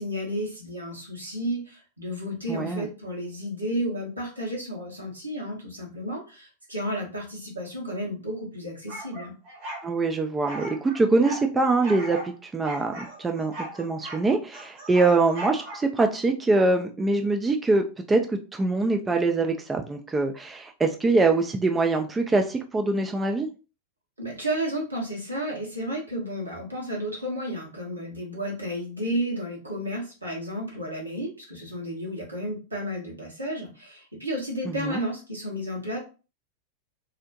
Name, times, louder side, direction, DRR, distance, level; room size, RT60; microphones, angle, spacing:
voice 1, 0.0-9.3 24.2-36.0, equal, 80° right, -2 dB, 1.0 m, -32 dB
voice 2, 2.5-2.9 9.8-23.5 34.6-35.0, right 3 dB, 15° right, 4 dB, 0.3 m, -24 dB
sound 1, 8.9-9.9 10.5-11.4 11.8-12.3 12.6-14.2 14.5-16.0, right 1 dB, 45° right, 0.9 m, -38 dB
2.5 x 2.1 x 2.8 m, 0.33 s
figure-of-eight pair, 90°, 0 cm